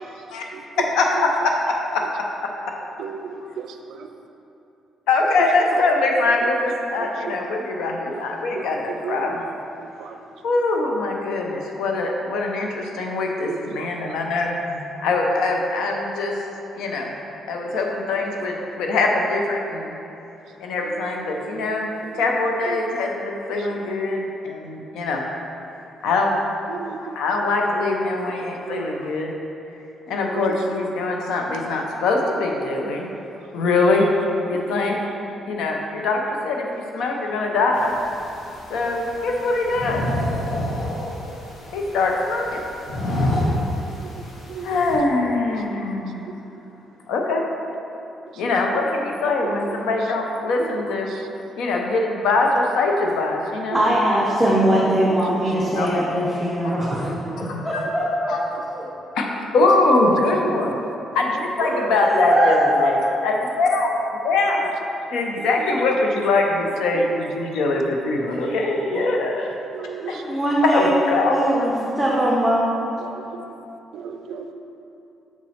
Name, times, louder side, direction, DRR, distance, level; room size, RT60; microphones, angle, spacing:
voice 1, 0.8-2.0 2.4-2.5 5.1-9.5 10.4-16.3 16.8-17.1 17.5-19.9 20.6-25.3 26.0-26.4 27.1-29.3 30.1-33.1 33.5-34.1 34.5-35.0 35.5-36.7 36.9-38.0 38.7-40.0 41.7-42.6 44.6-46.2 47.1-47.4 48.4-51.1 51.6-53.8 55.5-55.9 57.4-57.6 58.3-58.4 59.1-59.3 59.5-60.8 61.1-64.7 65.1-69.5 70.1-70.2 70.7-71.4, left 3 dB, 85° left, 1 dB, 0.7 m, -22 dB
voice 2, 3.0-4.1 7.0-7.4 8.1-8.2 8.6-8.8 9.0-9.3 10.0-10.2 13.5-14.2 21.1-22.1 22.7-22.8 23.7-23.8 26.7-27.1 27.4-27.5 28.2-28.9 30.3-30.6 32.7-32.9 33.6-33.7 44.0-44.1 44.5-44.7 49.4-49.5 50.6-50.7 51.1-51.2 53.7-53.8 55.1-55.8 57.2-57.4 60.4-60.6 61.7-61.8 65.4-65.5 67.4-67.5 68.2-68.4 69.7-70.2 73.0-73.2 73.9-74.5, right 7 dB, 80° right, 5 dB, 0.3 m, -35 dB
sound 1, 37.7-45.0, left 1 dB, 65° left, 1.3 m, -29 dB
voice 3, 53.7-58.3 61.6-61.7 62.1-62.5 62.8-62.9 68.2-68.3 68.6-69.0 69.9-70.9 71.3-72.6, right 1 dB, 5° right, -6 dB, 0.9 m, -21 dB
6.0 x 4.3 x 4.2 m, 2.9 s
cardioid pair, 90°, 0 cm